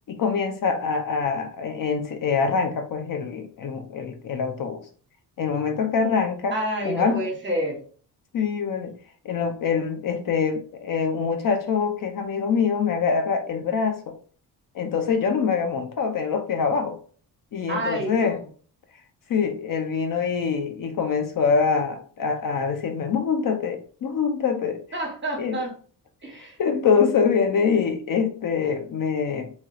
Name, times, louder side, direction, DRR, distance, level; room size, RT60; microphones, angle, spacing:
voice 1, 0.1-4.8 5.4-6.6 6.8-7.3 8.3-8.9 9.2-14.0 14.7-16.9 17.5-18.4 19.3-24.8 25.4-25.6 26.6-29.5, left 5 dB, 50° left, 0.5 m, -24 dB
voice 2, 6.5-7.8 17.7-18.4 24.9-25.7 26.2-26.6, right 1 dB, 25° right, 1.1 m, -29 dB
2.9 x 2.3 x 3.2 m
cardioid pair, 100°, 41 cm